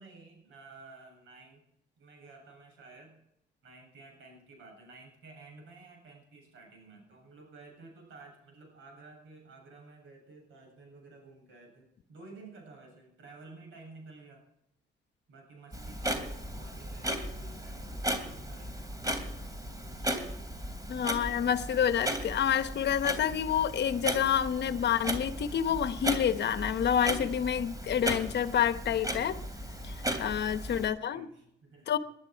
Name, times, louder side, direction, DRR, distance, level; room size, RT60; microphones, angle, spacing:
voice 1, 0.0-1.6 2.0-3.2 3.6-14.4 15.3-19.0 29.8-31.9, right 3 dB, 85° right, 1 dB, 7.8 m, -53 dB
Clock, 15.7-30.9, right 1 dB, 20° right, 2.9 m, -36 dB
voice 2, 20.9-29.4 29.8-29.9 30.2-31.3 31.9-32.0, left 9 dB, 60° left, 12 dB, 1.0 m, -28 dB
21.0 x 11.5 x 4.6 m, 0.79 s
cardioid pair, 90°, 20 cm